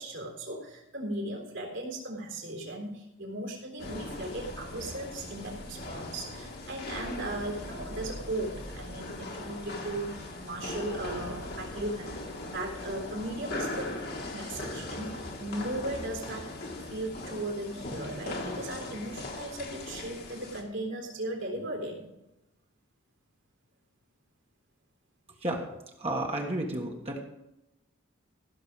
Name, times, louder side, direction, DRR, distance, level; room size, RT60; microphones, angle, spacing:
voice 1, 0.0-12.2 12.5-14.0 14.3-16.5 16.8-22.1, right 1 dB, 65° right, 0 dB, 3.7 m, -37 dB
sound 1, 3.8-20.6, left 2 dB, 50° left, 1.9 m, -39 dB
voice 2, 26.0-27.2, right 1 dB, 30° right, 0 dB, 1.5 m, -31 dB
16.0 x 6.8 x 5.0 m, 0.91 s
head